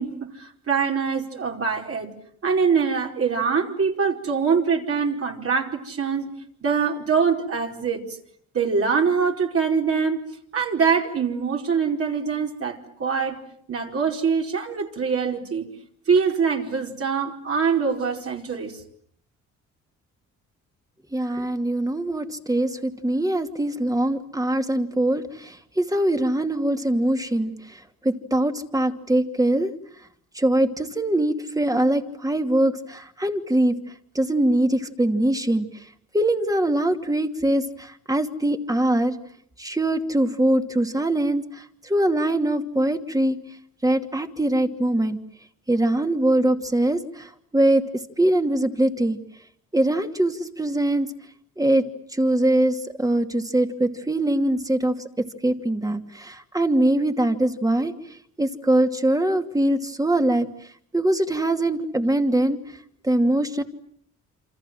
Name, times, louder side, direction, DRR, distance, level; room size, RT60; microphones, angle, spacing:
voice 1, 0.0-2.1 2.4-6.3 6.6-8.2 8.5-13.4 13.7-15.7 16.1-18.8, right 5 dB, 50° right, 2 dB, 4.8 m, -24 dB
voice 2, 21.1-29.7 30.3-33.8 34.1-35.7 36.1-39.1 39.6-43.4 43.8-45.2 45.7-47.8 48.2-49.2 49.7-51.1 51.6-51.8 52.1-54.9 55.4-57.9 58.4-60.5 60.9-62.6 63.0-63.6, right 1 dB, 10° right, 6 dB, 2.6 m, -22 dB
28.0 x 26.5 x 7.8 m, 0.66 s
cardioid pair, 90°, 30 cm